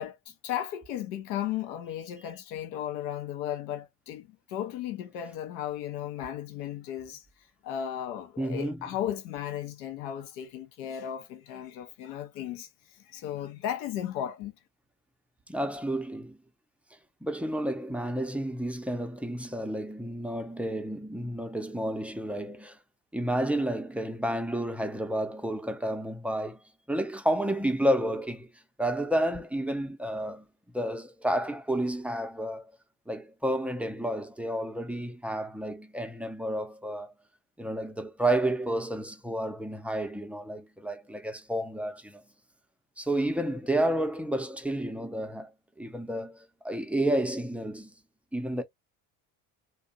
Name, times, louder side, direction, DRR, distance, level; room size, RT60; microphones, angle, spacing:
voice 1, 0.0-7.3 7.6-14.5, left 10 dB, 85° left, 0.7 m, -35 dB
voice 2, 8.4-8.8 15.5-16.4 17.2-22.8 23.1-26.6 26.9-28.5 28.8-30.4 30.7-32.7 33.1-37.1 37.6-42.2 43.0-45.5 45.8-47.9 48.3-48.6, right 1 dB, 5° right, 0.4 m, -30 dB
2.5 x 2.2 x 2.5 m
hypercardioid pair, 65°, 49 cm